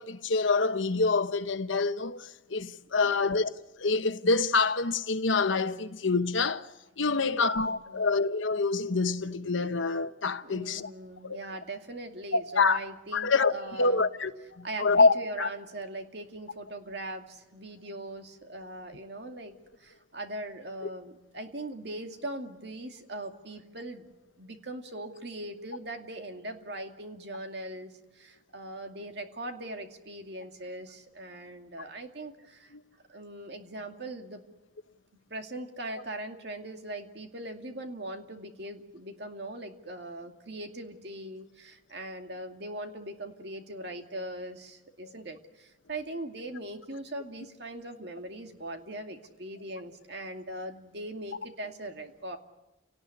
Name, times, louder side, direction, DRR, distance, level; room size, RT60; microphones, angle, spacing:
voice 1, 0.0-3.5 3.8-6.7 7.0-10.9 11.2-11.4 12.3-12.8 13.1-13.5 13.8-15.5 45.0-45.1, left 4 dB, 80° left, 1.1 m, -26 dB
voice 2, 7.1-8.1 10.4-14.1 14.6-24.1 24.4-32.7 33.1-34.4 35.3-52.4, right 1 dB, 55° right, 2.4 m, -40 dB
29.5 x 18.5 x 9.7 m
head